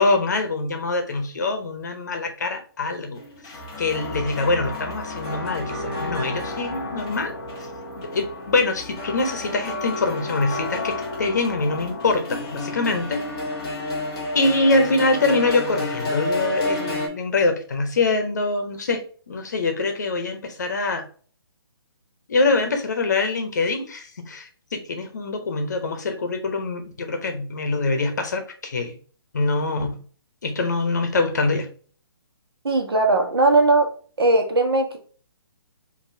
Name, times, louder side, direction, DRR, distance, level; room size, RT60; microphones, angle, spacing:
voice 1, 0.0-3.2 3.8-7.3 8.1-13.2 14.3-21.0 22.3-29.0 29.3-30.0 30.4-31.7, left 3 dB, 45° left, 6 dB, 0.8 m, -24 dB
sound 1, 3.2-17.1, left 2 dB, 10° left, 0.4 m, -30 dB
voice 2, 32.6-33.9 34.2-35.0, right 2 dB, 70° right, 4 dB, 1.2 m, -18 dB
5.3 x 2.7 x 2.7 m, 0.42 s
hypercardioid pair, 175°, 13 cm